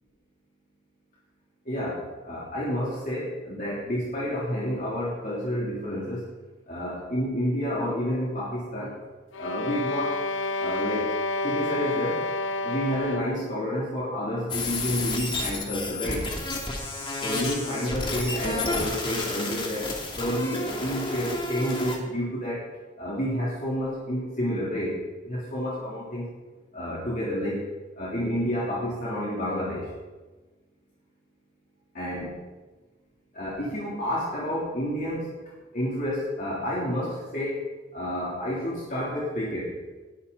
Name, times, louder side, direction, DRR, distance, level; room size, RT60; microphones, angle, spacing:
voice 1, 1.6-6.3 6.7-8.9 9.4-10.2 10.6-11.1 11.4-12.2 12.6-16.3 17.2-22.7 23.0-26.3 26.7-27.7 28.0-29.9 31.9-32.3 33.3-35.4 35.7-37.6 37.9-39.7, equal, 45° left, -7 dB, 3.4 m, -29 dB
sound 1, 9.3-13.5, left 2 dB, 85° left, 0.6 m, -29 dB
sound 2, 14.5-22.0, left 2 dB, 25° left, 2.6 m, -31 dB
21.0 x 12.5 x 4.1 m, 1.3 s
head